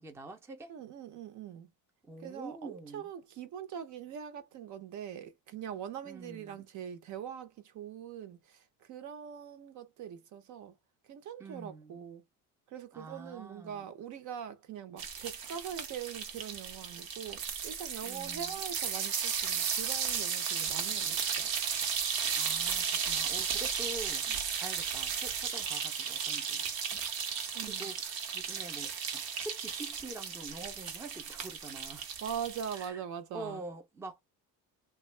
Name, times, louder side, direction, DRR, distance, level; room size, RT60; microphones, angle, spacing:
voice 1, 0.0-0.7 2.1-3.0 6.0-6.6 11.4-12.0 12.9-13.9 18.0-18.6 22.4-26.6 27.6-32.1 32.7-33.0 33.3-34.2, right 2 dB, 5° right, 0.5 m, -46 dB
voice 2, 0.7-1.7 2.2-10.8 11.1-12.2 12.7-21.5 27.5-27.9 32.2-33.6, right 8 dB, 55° right, 0.7 m, -42 dB
sound 1, 15.0-32.9, right 7 dB, 85° right, 1.0 m, -35 dB
3.5 x 2.3 x 3.2 m
cardioid pair, 165°, 35 cm